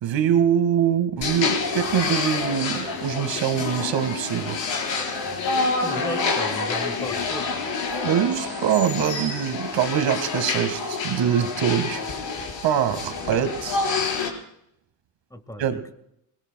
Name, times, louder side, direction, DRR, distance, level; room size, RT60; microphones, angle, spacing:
voice 1, 0.0-4.6 8.0-12.0 12.6-13.8 15.6-15.8, right 9 dB, 70° right, 9 dB, 1.9 m, -23 dB
sound 1, 1.2-14.3, left 4 dB, 70° left, 5.0 m, -27 dB
voice 2, 5.8-7.6 15.3-15.9, equal, 5° left, 9 dB, 1.7 m, -35 dB
28.5 x 21.0 x 2.3 m, 0.76 s
cardioid pair, 115°, 46 cm